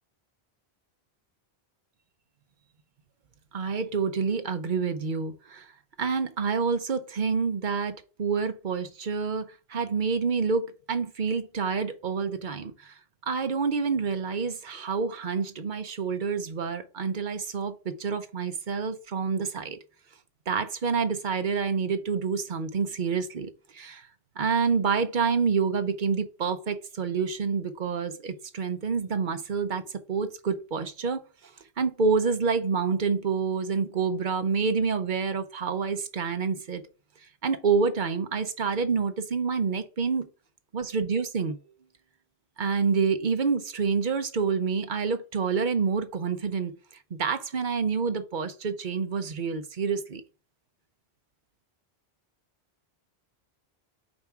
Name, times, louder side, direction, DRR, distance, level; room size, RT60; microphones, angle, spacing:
voice 1, 3.5-5.7 6.0-13.0 13.2-19.8 20.5-24.1 24.4-31.2 31.8-36.8 37.4-40.3 40.7-41.6 42.6-46.8 47.1-50.2, right 5 dB, 50° right, 1.0 m, -28 dB
5.1 x 3.6 x 5.7 m
omnidirectional pair, 1.1 m